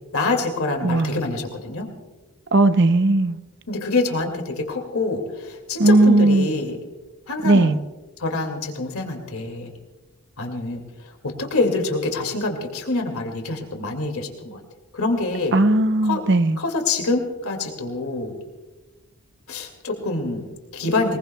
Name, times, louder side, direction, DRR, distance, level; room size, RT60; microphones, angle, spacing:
voice 1, 0.1-1.9 3.7-6.8 7.3-7.8 8.2-9.7 10.4-14.6 14.9-15.6 16.0-16.2 16.6-18.4 19.5-21.2, left 3 dB, 75° left, 4 dB, 2.3 m, -26 dB
voice 2, 0.8-1.2 2.5-3.4 5.8-6.5 7.4-7.8 15.5-16.6, right 2 dB, 50° right, 11 dB, 0.6 m, -17 dB
22.5 x 20.5 x 2.3 m, 1.1 s
head